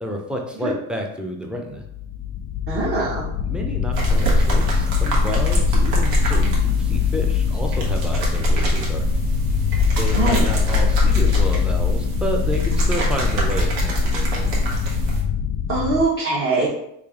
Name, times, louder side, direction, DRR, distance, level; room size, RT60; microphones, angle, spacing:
voice 1, 0.0-1.8 3.4-9.0 10.0-14.5, equal, 5° right, 1 dB, 0.4 m, -30 dB
sound 1, 1.7-16.0, left 9 dB, 65° left, 0.5 m, -23 dB
voice 2, 2.7-3.3 10.1-10.5 15.7-16.7, right 3 dB, 35° right, -5 dB, 0.8 m, -22 dB
sound 2, 3.9-15.2, equal, 75° right, 1.1 m, -22 dB
3.3 x 2.4 x 3.5 m, 0.76 s
cardioid pair, 120°, 37 cm